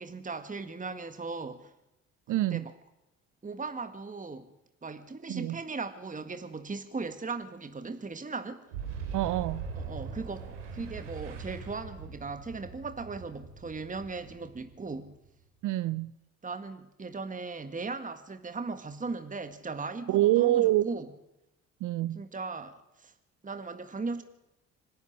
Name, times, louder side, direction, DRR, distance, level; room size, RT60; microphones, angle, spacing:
voice 1, 0.0-1.7 2.3-2.7 3.4-4.5 4.8-8.6 9.7-15.1 16.4-21.1 22.2-23.1 23.4-24.2, right 4 dB, 20° right, 1.8 m, -38 dB
voice 2, 2.3-2.6 5.3-5.6 9.1-9.6 15.6-16.1 20.1-20.9 21.8-22.2, right 15 dB, 60° right, 0.7 m, -26 dB
Boom, 8.7-15.3, right 6 dB, 90° right, 3.2 m, -41 dB
26.0 x 12.0 x 9.9 m
hypercardioid pair, 55°, 35 cm